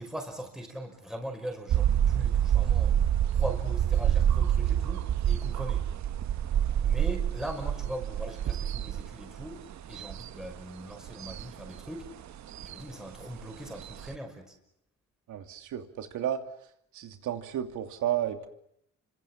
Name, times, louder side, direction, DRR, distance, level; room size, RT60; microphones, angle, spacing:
voice 1, 0.0-3.0 3.3-5.9 6.8-12.1 12.6-14.5, equal, ahead, 3 dB, 5.8 m, -40 dB
sound 1, 1.7-14.2, right 10 dB, 65° right, 1.1 m, -27 dB
voice 2, 15.3-16.4 16.9-18.5, right 11 dB, 80° right, 6 dB, 2.9 m, -32 dB
29.0 x 25.5 x 7.5 m, 0.76 s
cardioid pair, 90°, 30 cm